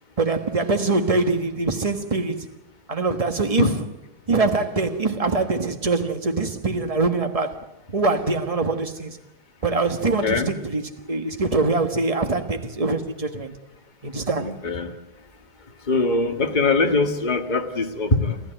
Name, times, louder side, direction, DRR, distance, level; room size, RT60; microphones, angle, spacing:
voice 1, 0.2-2.5 2.9-3.7 4.3-7.6 7.9-9.2 9.6-13.5 14.0-14.5, right 3 dB, 20° right, 1.2 m, -23 dB
voice 2, 10.0-10.5 14.4-14.9 15.9-18.4, left 3 dB, 25° left, 1.8 m, -22 dB
27.5 x 15.0 x 9.2 m
omnidirectional pair, 2.2 m